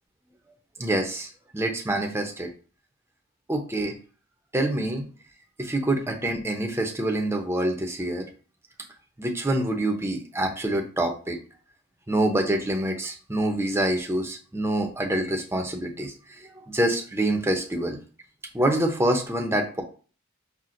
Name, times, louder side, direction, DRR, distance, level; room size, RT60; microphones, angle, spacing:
voice 1, 0.8-2.5 3.5-3.9 4.5-5.0 5.6-8.3 9.2-11.4 12.1-18.0 18.5-19.8, right 1 dB, 15° right, 2 dB, 0.6 m, -26 dB
5.8 x 2.1 x 2.5 m, 0.39 s
head